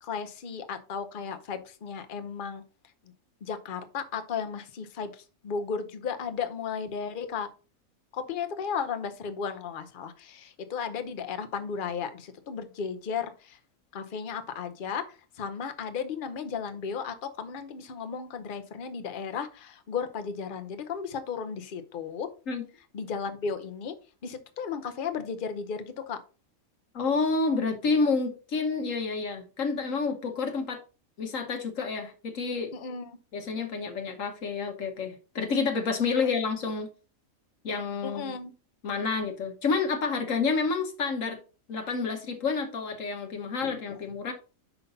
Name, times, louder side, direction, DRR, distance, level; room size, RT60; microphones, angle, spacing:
voice 1, 0.0-2.6 3.4-5.1 5.4-7.5 8.1-13.6 13.9-15.0 15.4-22.3 22.9-23.9 24.2-26.2 32.7-33.1 38.0-38.5 43.6-44.0, left 6 dB, 45° left, 0.8 m, -34 dB
voice 2, 26.9-30.8 31.2-32.7 33.3-36.9 37.6-38.4 38.8-41.4 41.7-44.3, left 4 dB, 65° left, 1.3 m, -29 dB
5.7 x 5.6 x 4.0 m
omnidirectional pair, 1.5 m